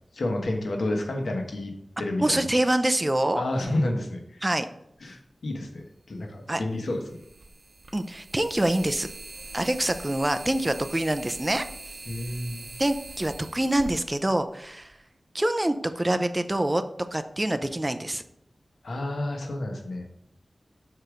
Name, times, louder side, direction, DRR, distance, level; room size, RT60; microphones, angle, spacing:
voice 1, 0.1-1.7 2.0-2.4 3.4-4.5 5.0-7.2 12.1-12.6 18.8-20.1, left 1 dB, 90° left, 2 dB, 1.3 m, -30 dB
voice 2, 2.2-3.4 4.4-4.7 6.5-6.6 7.9-9.1 9.5-11.6 12.8-14.9 15.3-16.8 17.1-18.2, right 1 dB, 20° right, 9 dB, 0.6 m, -25 dB
sound 1, 5.6-5.7 7.0-14.9, right 2 dB, 65° right, 0.8 m, -43 dB
6.6 x 4.7 x 5.0 m, 0.75 s
wide cardioid pair, 95°, 0 cm